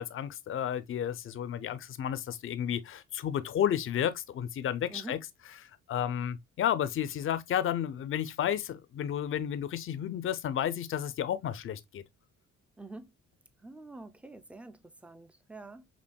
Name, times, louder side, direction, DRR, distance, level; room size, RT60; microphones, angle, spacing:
voice 1, 0.0-5.2 5.6-12.0, left 10 dB, 45° left, 0.5 m, -32 dB
voice 2, 12.8-13.1 13.6-15.8, right 2 dB, 5° right, 0.5 m, -46 dB
5.2 x 2.8 x 2.2 m
cardioid pair, 90°, 30 cm